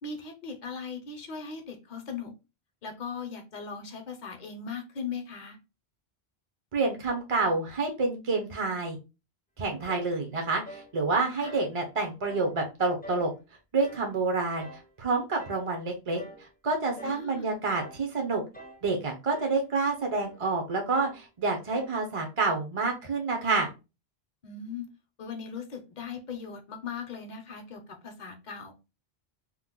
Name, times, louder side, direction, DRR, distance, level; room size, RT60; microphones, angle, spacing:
voice 1, 0.0-2.3 2.8-5.6 11.4-11.5 17.0-17.5 24.4-24.9 25.2-28.7, left 5 dB, 50° left, 5 dB, 0.7 m, -39 dB
voice 2, 6.7-9.0 9.6-13.3 13.7-18.4 18.8-23.7, right 3 dB, 40° right, 3 dB, 0.5 m, -28 dB
sound 1, 9.9-10.2 10.6-10.9 11.4-11.7 12.2-12.5 13.0-13.3 13.8-14.1 14.6-14.9 15.4-15.7 16.2-16.5 17.0-17.3 17.7-18.1 18.5-18.9 19.3-19.6 20.1-20.4 20.9-21.2 21.7-22.0, right 1 dB, 15° left, 0.4 m, -46 dB
3.0 x 2.0 x 3.5 m, 0.28 s
omnidirectional pair, 1.1 m